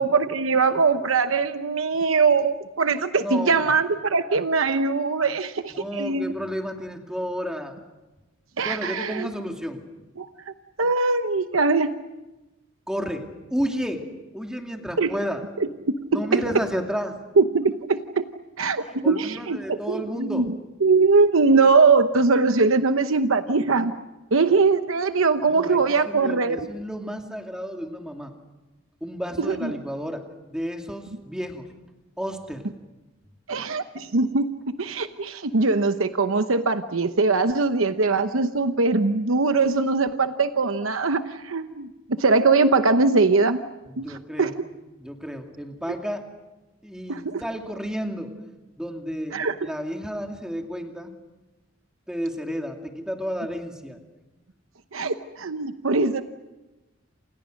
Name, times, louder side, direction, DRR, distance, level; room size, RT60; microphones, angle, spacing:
voice 1, 0.0-6.3 8.6-9.3 10.2-10.3 10.8-11.9 15.0-15.1 15.6-16.4 17.4-18.2 18.6-20.5 20.8-23.9 24.3-26.7 29.5-29.7 33.5-34.5 34.8-43.6 44.0-44.5 47.1-47.4 49.3-49.7 54.9-56.2, right 4 dB, 90° right, 9 dB, 0.9 m, -21 dB
voice 2, 3.2-3.7 5.7-7.8 8.6-9.8 12.9-14.1 14.3-15.4 16.1-17.2 19.0-20.5 23.6-23.7 25.4-25.8 26.0-28.3 29.0-30.2 30.5-31.7 32.2-32.7 43.9-44.6 45.0-46.3 46.8-48.3 48.8-51.1 52.1-54.0, equal, 5° right, 3 dB, 2.5 m, -32 dB
28.0 x 28.0 x 6.5 m, 1.1 s
head